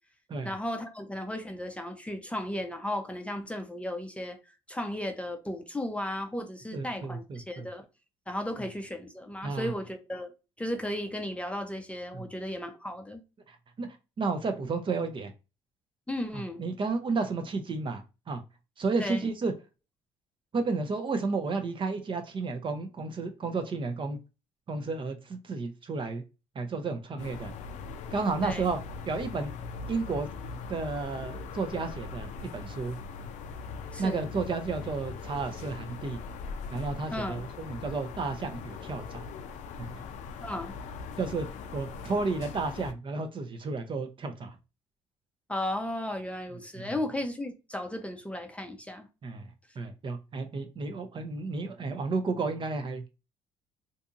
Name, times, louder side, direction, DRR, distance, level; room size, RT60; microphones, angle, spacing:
voice 1, 0.4-4.4 4.7-7.8 8.3-10.3 10.6-13.2 16.1-16.6 19.0-19.2 28.4-28.7 33.9-34.3 37.1-37.4 40.4-40.7 45.5-49.1, left 1 dB, 10° left, 0.5 m, -35 dB
voice 2, 6.7-7.7 9.4-9.7 12.1-12.3 13.5-13.9 14.2-15.3 16.3-18.4 18.8-19.5 20.5-24.2 24.7-26.2 26.6-27.5 28.1-28.8 29.1-29.5 29.9-30.3 30.7-33.0 34.0-36.2 36.7-39.3 39.8-40.0 41.2-44.6 46.8-46.9 49.2-49.5 49.8-53.0, right 4 dB, 40° right, 0.6 m, -32 dB
sound 1, 27.2-42.9, left 5 dB, 65° left, 0.4 m, -41 dB
2.6 x 2.6 x 2.4 m
supercardioid pair, 65°, 13 cm